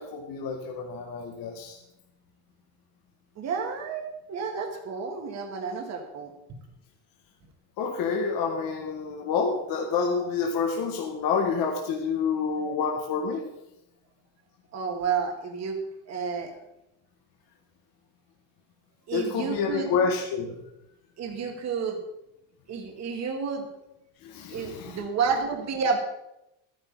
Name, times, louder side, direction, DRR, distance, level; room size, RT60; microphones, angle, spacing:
voice 1, 0.0-1.8 7.8-13.5 19.1-20.6 24.2-25.0, left 5 dB, 55° left, 1 dB, 1.8 m, -28 dB
voice 2, 3.4-6.3 14.7-15.8 16.1-16.5 19.1-19.9 21.2-22.0 22.7-23.7 24.5-26.0, right 5 dB, 40° right, 3 dB, 1.9 m, -30 dB
12.5 x 10.0 x 4.1 m, 0.87 s
cardioid pair, 140°, 42 cm